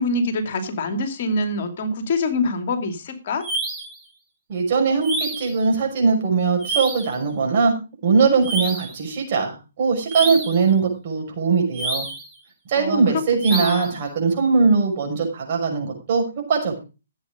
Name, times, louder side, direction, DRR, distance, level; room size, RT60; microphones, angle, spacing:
voice 1, 0.0-3.4 12.7-13.0 13.5-14.0, left 2 dB, 45° left, 8 dB, 2.6 m, -25 dB
sound 1, 3.4-4.0 5.0-5.6 6.6-7.2 8.4-9.0 10.1-10.6 11.7-12.3 13.4-14.0, right 2 dB, 10° right, 3.2 m, -28 dB
voice 2, 4.5-7.7 8.0-12.1 12.7-16.8, right 5 dB, 40° right, 2 dB, 6.1 m, -20 dB
16.0 x 8.3 x 5.1 m, 0.31 s
figure-of-eight pair, 135°, 0 cm